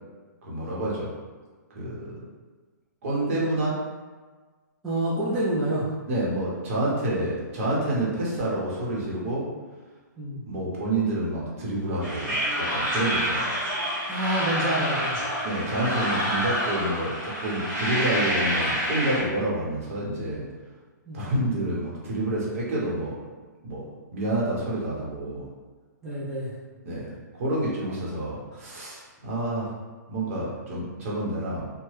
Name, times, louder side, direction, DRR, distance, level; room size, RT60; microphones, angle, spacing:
voice 1, 0.4-1.1 1.7-2.2 3.0-3.8 6.1-9.5 10.4-13.6 15.4-20.4 21.1-23.2 23.6-23.8 24.1-25.5 26.8-29.7 30.1-31.6, right 1 dB, 45° right, -5 dB, 0.9 m, -28 dB
voice 2, 4.8-5.9 10.2-10.4 14.1-15.2 21.1-21.2 26.0-26.5 28.5-28.7, right 1 dB, 5° right, -13 dB, 0.4 m, -28 dB
sound 1, 12.0-19.2, equal, 20° right, 1.0 m, -27 dB
2.9 x 2.2 x 3.1 m, 1.4 s
hypercardioid pair, 160°, 10 cm